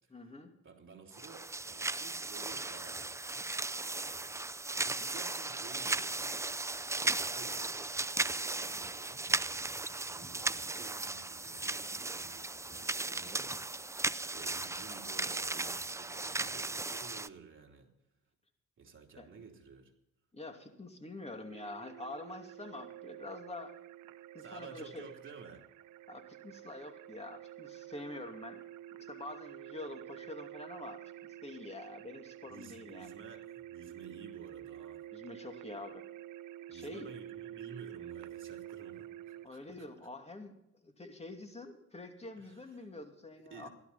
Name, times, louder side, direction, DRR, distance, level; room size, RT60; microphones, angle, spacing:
voice 1, 0.1-0.5 19.2-19.3 20.3-23.7 24.3-25.1 26.1-28.6 29.0-33.1 35.1-36.0 36.7-37.1 39.4-40.6 40.8-43.7, left 2 dB, 20° left, 5 dB, 2.5 m, -46 dB
voice 2, 0.6-3.5 4.8-6.4 7.0-9.3 9.9-13.7 14.3-17.9 18.8-19.9 24.4-25.6 32.5-35.1 36.7-39.6 42.4-42.9 43.4-43.7, right 5 dB, 40° right, 0 dB, 3.4 m, -53 dB
sound 1, 1.1-17.3, right 3 dB, 10° right, 0.4 m, -36 dB
sound 2, 21.5-39.5, right 13 dB, 80° right, 0.7 m, -49 dB
16.5 x 12.5 x 4.2 m, 0.80 s
cardioid pair, 90°, 30 cm